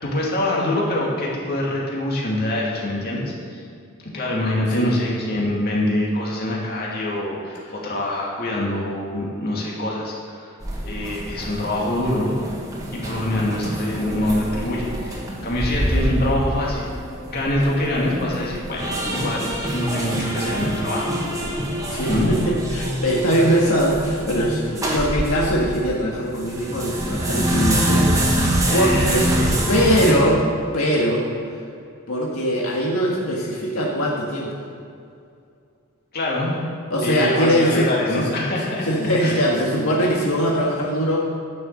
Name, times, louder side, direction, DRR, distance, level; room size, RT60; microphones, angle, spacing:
voice 1, 0.0-3.6 4.1-10.5 10.8-12.6 13.0-16.9 17.3-21.1 22.0-22.3 28.6-30.1 36.1-36.5 37.0-38.9 39.2-39.4, left 1 dB, 45° left, -4 dB, 2.5 m, -24 dB
sound 1, 10.6-25.9 26.3-30.1, right 1 dB, 15° right, 1.6 m, -25 dB
voice 2, 21.9-29.3 29.7-30.4 30.7-31.2 32.1-34.6 36.9-37.9 38.1-38.3 38.8-41.2, equal, 80° left, -3 dB, 1.7 m, -21 dB
11.0 x 6.8 x 7.5 m, 2.4 s
head